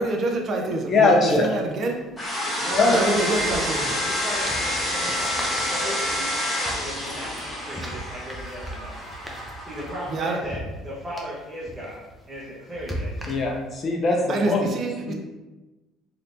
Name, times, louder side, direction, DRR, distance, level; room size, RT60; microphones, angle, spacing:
voice 1, 0.0-2.0 2.9-3.9 10.1-10.4 14.3-15.1, right 2 dB, 50° right, 2 dB, 0.6 m, -26 dB
voice 2, 0.9-1.5 2.4-2.5 2.8-3.0 13.3-14.7 15.1-15.2, left 3 dB, 45° left, 1 dB, 0.5 m, -21 dB
sound 1, 1.0-1.1 2.6-13.8, equal, 5° right, 0.7 m, -39 dB
sound 2, 2.2-10.3, left 1 dB, 20° left, 1.4 m, -28 dB
voice 3, 2.6-3.7 4.0-6.3 6.8-9.0 9.6-10.6 10.8-13.2, equal, 20° right, -8 dB, 1.1 m, -36 dB
3.3 x 2.8 x 2.6 m, 1.1 s
supercardioid pair, 80°, 0 cm